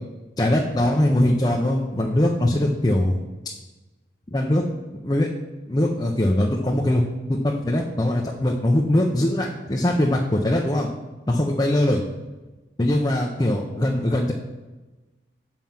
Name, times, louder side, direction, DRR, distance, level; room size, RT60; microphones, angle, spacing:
voice 1, 0.4-3.2 4.3-4.6 5.0-5.3 5.7-7.0 7.3-10.9 11.3-12.0 12.8-14.3, left 1 dB, 20° left, -1 dB, 0.6 m, -21 dB
7.4 x 5.2 x 5.8 m, 1.2 s
head